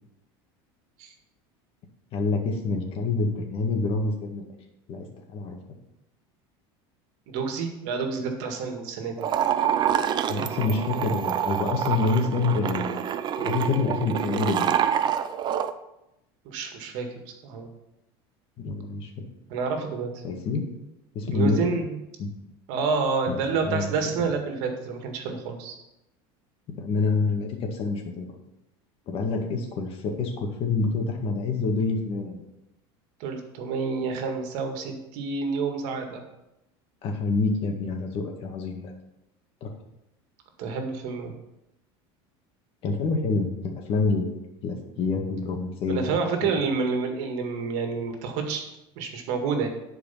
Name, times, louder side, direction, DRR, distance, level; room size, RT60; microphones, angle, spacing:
voice 1, 2.1-4.4 4.9-5.1 5.3-5.6 10.3-13.1 13.4-14.8 18.6-19.2 20.2-20.7 21.1-21.8 22.2-22.3 23.3-23.9 26.8-28.3 29.1-32.4 37.0-38.9 39.6-39.7 42.8-44.3 44.6-46.1, left 3 dB, 45° left, 3 dB, 1.9 m, -27 dB
voice 2, 7.3-9.3 16.5-17.7 19.5-20.2 21.3-21.9 22.7-25.8 33.2-36.2 40.6-41.3 45.9-48.6 49.0-49.7, right 5 dB, 65° right, 4 dB, 1.9 m, -29 dB
sound 1, 9.2-15.7, right 9 dB, 35° right, 0.6 m, -26 dB
10.5 x 4.8 x 5.8 m, 0.89 s
supercardioid pair, 130°, 13 cm